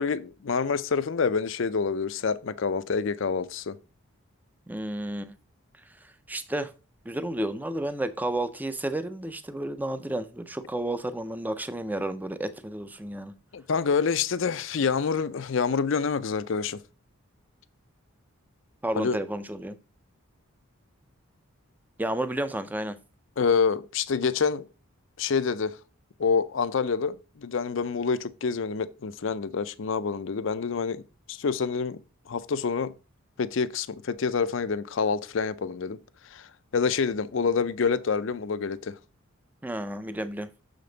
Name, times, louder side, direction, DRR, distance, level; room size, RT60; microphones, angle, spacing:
voice 1, 0.0-3.8 13.5-16.8 19.0-19.2 23.4-24.7 25.2-25.8 26.2-31.0 31.3-32.0 32.3-32.9 33.4-36.0 36.3-36.5 36.7-38.9, left 5 dB, 60° left, 0.5 m, -27 dB
voice 2, 4.7-5.3 6.0-6.7 7.1-13.3 18.8-19.8 22.0-23.0 39.6-40.5, right 1 dB, 10° right, 0.4 m, -31 dB
6.6 x 5.1 x 3.9 m
head